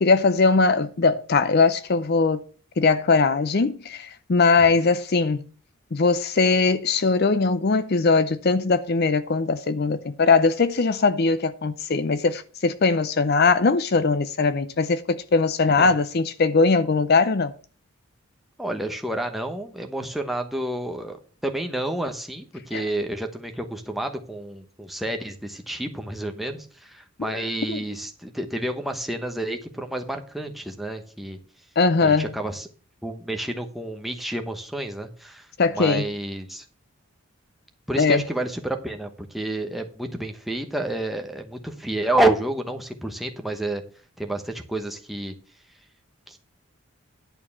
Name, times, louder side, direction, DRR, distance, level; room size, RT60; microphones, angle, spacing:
voice 1, 0.0-2.4 2.8-5.5 5.9-17.5 22.7-22.8 27.7-27.8 31.8-32.3 35.6-36.0 38.0-38.2, left 4 dB, 45° left, 0.5 m, -20 dB
voice 2, 18.6-21.2 21.4-31.4 32.0-32.7 33.0-35.5 35.7-36.6 37.9-43.8 44.2-45.3 46.3-46.4, right 1 dB, ahead, 1.0 m, -29 dB
11.0 x 4.6 x 7.1 m
head